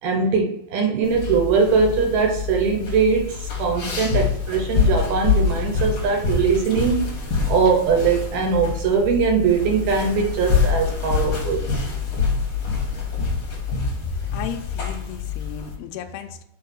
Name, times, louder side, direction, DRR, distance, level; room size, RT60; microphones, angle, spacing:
voice 1, 0.0-7.1 7.5-11.7, right 5 dB, 75° right, 3 dB, 2.4 m, -21 dB
sound 1, 1.0-15.7, left 5 dB, 50° left, 1.6 m, -25 dB
voice 2, 14.0-16.4, left 6 dB, 80° left, 6 dB, 2.6 m, -34 dB
6.1 x 4.7 x 6.1 m, 0.79 s
omnidirectional pair, 5.1 m